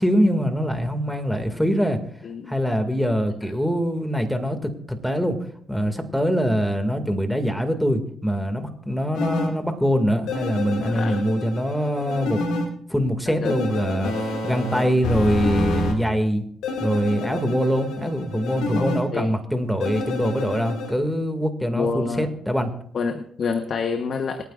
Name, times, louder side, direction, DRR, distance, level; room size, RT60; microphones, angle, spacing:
voice 1, 0.0-2.0 2.5-5.4 5.7-12.4 12.9-16.4 16.8-22.7, equal, 5° left, 6 dB, 2.1 m, -23 dB
voice 2, 2.2-2.5 10.9-11.2 13.3-13.5 18.7-18.9 19.1-19.3 21.7-22.3 22.9-24.4, left 5 dB, 60° left, 7 dB, 1.0 m, -27 dB
sound 1, 9.1-9.5 10.3-12.7 13.5-15.9 16.6-19.0 19.8-20.9, left 3 dB, 85° left, 2.2 m, -28 dB
26.5 x 9.3 x 2.5 m, 0.63 s
supercardioid pair, 65°, 0 cm